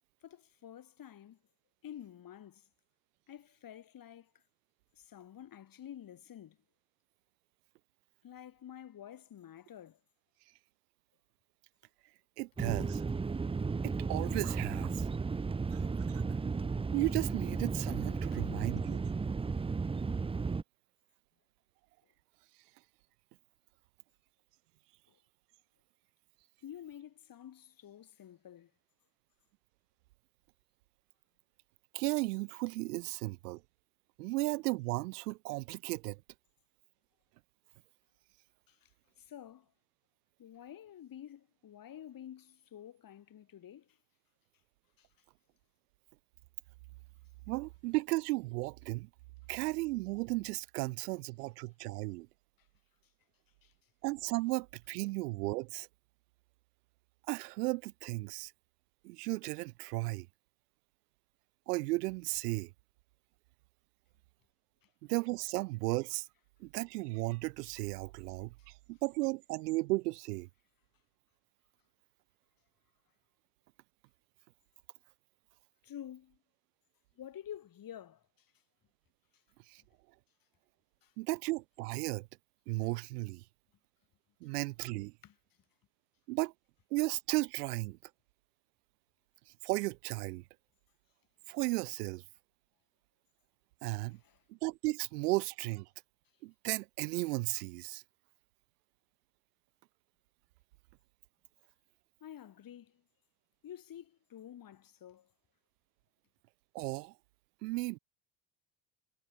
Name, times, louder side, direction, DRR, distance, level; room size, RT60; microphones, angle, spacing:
voice 1, 0.2-1.4 1.8-2.7 3.3-4.4 5.0-6.6 8.2-10.0 18.3-18.5 25.1-25.2 26.6-28.7 38.7-38.9 39.2-39.7 40.4-44.0 45.0-45.1 52.6-52.7 53.6-53.7 75.8-76.4 77.2-78.5 81.0-81.1 85.2-85.3 94.2-94.4 102.2-103.0 103.6-105.3, left 10 dB, 45° left, 2.6 m, -50 dB
voice 2, 12.4-13.0 13.8-15.1 15.7-15.8 16.1-16.2 16.9-19.1 31.9-33.6 34.2-36.2 47.5-49.1 49.5-52.3 54.0-55.9 57.3-58.5 59.0-60.3 61.7-62.7 65.0-66.3 66.6-70.5 79.7-79.8 81.2-82.3 82.7-83.4 84.4-85.1 86.3-86.5 86.9-88.0 89.6-90.4 91.5-92.2 93.8-94.2 94.5-95.9 96.4-98.0 106.7-107.1 107.6-108.0, right 22 dB, 80° right, 0.8 m, -35 dB
sound 1, 12.6-20.6, right 4 dB, 10° right, 0.6 m, -34 dB
hypercardioid pair, 65°, 46 cm